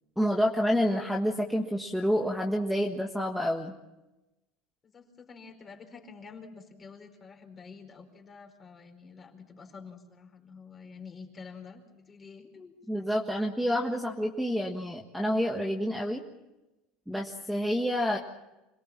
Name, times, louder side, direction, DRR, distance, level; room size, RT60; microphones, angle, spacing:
voice 1, 0.2-3.7 12.9-16.2 17.1-18.2, equal, ahead, 1 dB, 1.6 m, -28 dB
voice 2, 4.9-12.7, left 5 dB, 25° left, 3 dB, 4.7 m, -48 dB
27.0 x 18.5 x 7.4 m, 1.0 s
supercardioid pair, 130°, 0 cm